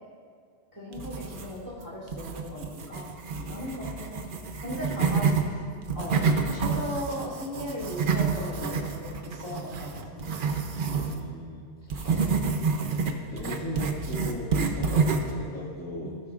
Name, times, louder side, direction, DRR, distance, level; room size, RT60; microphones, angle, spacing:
voice 1, 0.7-3.2 3.4-5.6 5.9-10.3 12.0-12.6 16.0-16.2, equal, 30° right, -6 dB, 3.2 m, -37 dB
sound 1, 0.9-1.7 2.1-5.4 5.8-11.2 11.9-15.4, right 5 dB, 50° right, 0.9 m, -28 dB
voice 2, 11.0-12.2 13.3-16.1, equal, 15° left, -10 dB, 1.8 m, -37 dB
18.5 x 8.3 x 2.4 m, 2.1 s
omnidirectional pair, 1.2 m